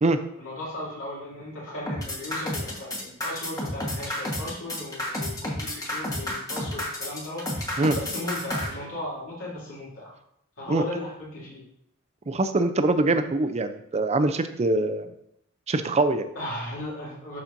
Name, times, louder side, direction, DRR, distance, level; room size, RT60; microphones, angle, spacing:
voice 1, 0.4-10.1 10.6-11.7 16.3-17.4, left 1 dB, 70° left, -6 dB, 2.7 m, -36 dB
sound 1, 1.9-8.7, left 1 dB, 15° left, 1.3 m, -30 dB
voice 2, 12.3-15.1 15.7-16.3, right 2 dB, 30° right, 9 dB, 0.5 m, -23 dB
11.5 x 4.3 x 2.6 m, 0.76 s
head